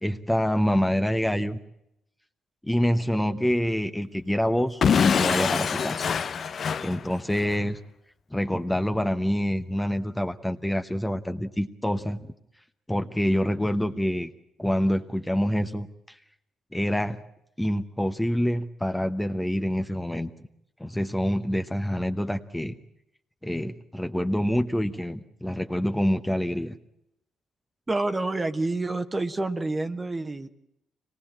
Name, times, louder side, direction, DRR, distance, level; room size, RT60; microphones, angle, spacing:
voice 1, 0.0-1.6 2.6-6.1 6.8-7.8 8.3-12.2 12.9-14.3 14.6-16.2 16.7-17.2 17.6-20.3 20.8-22.7 23.4-26.7, equal, 5° left, 7 dB, 1.0 m, -26 dB
Explosion / Shatter, 4.8-7.6, left 6 dB, 50° left, 0.9 m, -24 dB
voice 2, 27.9-30.5, right 2 dB, 20° right, 11 dB, 1.3 m, -28 dB
24.5 x 19.0 x 8.8 m, 0.80 s
cardioid pair, 90°, 0 cm